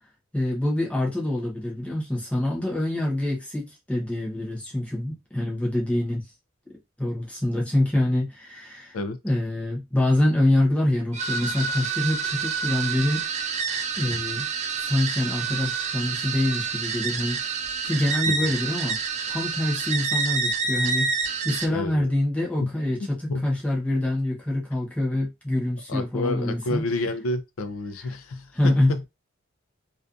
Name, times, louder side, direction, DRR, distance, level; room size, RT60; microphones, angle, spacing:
voice 1, 0.3-6.3 7.0-9.0 9.2-13.3 14.0-14.5 14.8-17.4 17.8-19.0 19.3-21.1 21.4-26.8 28.5-29.1, left 1 dB, 5° left, 0.8 m, -25 dB
sound 1, 11.1-21.7, right 5 dB, 35° right, 0.3 m, -28 dB
voice 2, 21.7-22.1 22.6-22.7 23.3-23.5 25.9-29.0, left 2 dB, 85° left, 0.4 m, -29 dB
2.5 x 2.3 x 2.4 m
head